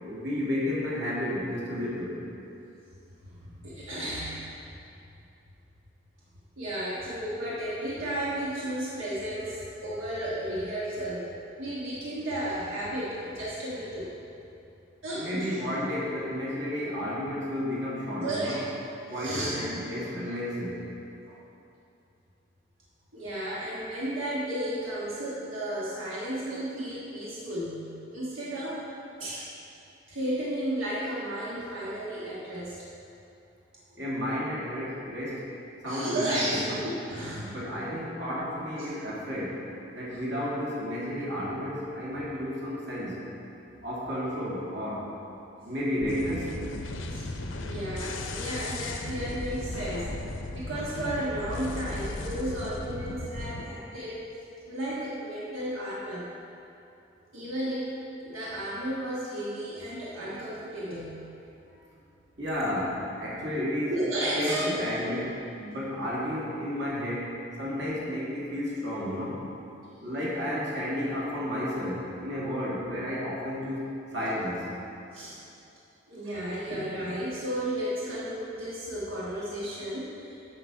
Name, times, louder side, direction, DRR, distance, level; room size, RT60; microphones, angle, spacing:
voice 1, 0.0-2.2 15.1-18.6 19.1-20.8 33.9-35.5 35.8-36.8 37.3-39.7 39.9-43.2 43.8-45.1 45.6-46.5 62.4-63.9 64.4-69.4 70.0-74.7 76.2-76.4, left 1 dB, 60° right, -6 dB, 2.0 m, -32 dB
voice 2, 3.2-4.4 6.6-11.3 11.6-14.1 15.0-15.5 18.2-18.6 19.2-19.6 19.9-20.2 21.3-21.4 23.1-28.8 29.2-29.5 30.1-32.8 35.9-37.8 47.1-47.3 47.6-50.1 50.5-54.2 54.7-56.2 57.3-57.9 58.2-61.2 63.9-64.8 75.1-75.4 76.1-80.4, right 1 dB, 85° right, -8 dB, 1.5 m, -33 dB
sound 1, 46.0-53.6, left 2 dB, 85° left, 0.7 m, -36 dB
8.7 x 5.9 x 4.8 m, 2.7 s
head